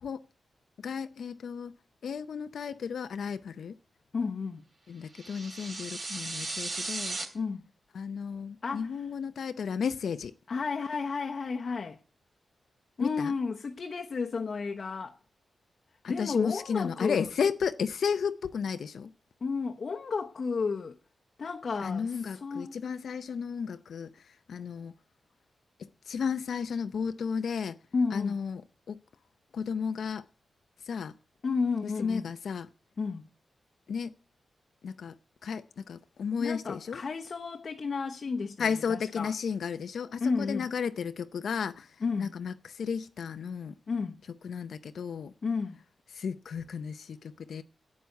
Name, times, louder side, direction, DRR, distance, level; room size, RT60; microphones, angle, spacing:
voice 1, 0.8-1.7 2.0-3.8 4.9-7.2 7.9-10.3 13.0-13.3 16.0-19.1 21.8-24.1 24.5-24.9 25.8-27.8 28.1-29.0 29.5-30.2 30.9-31.1 31.8-32.7 33.9-34.1 34.8-35.2 35.4-37.0 38.6-41.9 42.2-43.7 44.4-45.3 46.1-47.6, left 6 dB, 75° left, 0.6 m, -33 dB
voice 2, 4.1-4.6 7.3-7.6 8.6-8.9 10.5-12.0 13.0-15.2 16.1-17.3 19.4-21.0 21.4-22.7 27.9-28.4 31.4-32.3 33.0-33.2 36.4-39.3 40.2-40.7 42.0-42.3 43.9-44.2 45.4-45.8, left 4 dB, 50° left, 0.9 m, -32 dB
sound 1, 5.1-7.2, right 2 dB, 40° right, 2.9 m, -36 dB
11.0 x 8.5 x 9.4 m
wide cardioid pair, 140°, 0 cm